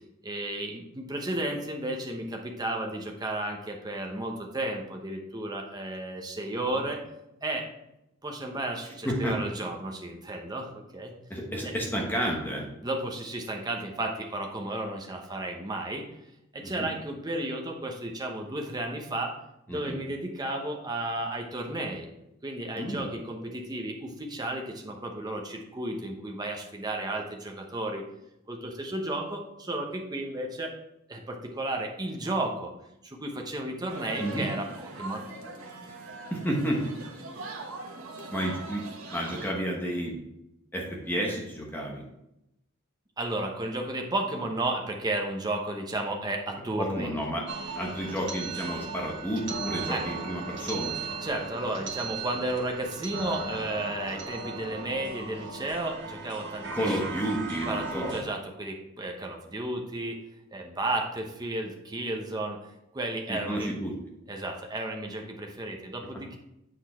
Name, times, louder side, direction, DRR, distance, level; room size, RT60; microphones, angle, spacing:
voice 1, 0.2-7.0 7.4-7.7 8.2-11.1 11.6-11.7 12.8-16.0 16.5-19.4 19.7-22.1 22.4-28.0 28.5-30.7 31.1-32.7 33.0-34.7 34.9-35.2 43.2-47.1 49.9-50.0 51.2-57.2 57.7-60.2 60.5-62.6 62.9-63.8 64.3-66.4, right 1 dB, 20° right, 2 dB, 1.0 m, -33 dB
voice 2, 11.3-12.6 16.6-16.9 19.7-20.0 22.8-23.0 34.2-34.5 36.3-36.9 38.3-38.8 39.1-40.1 40.7-42.0 46.5-47.4 47.8-51.0 56.7-58.2 63.3-63.9, equal, 10° left, -1 dB, 1.0 m, -31 dB
sound 1, 33.9-39.5, right 2 dB, 85° right, 1.2 m, -41 dB
sound 2, 47.5-58.2, right 4 dB, 55° right, 1.2 m, -37 dB
8.2 x 4.5 x 4.3 m, 0.85 s
head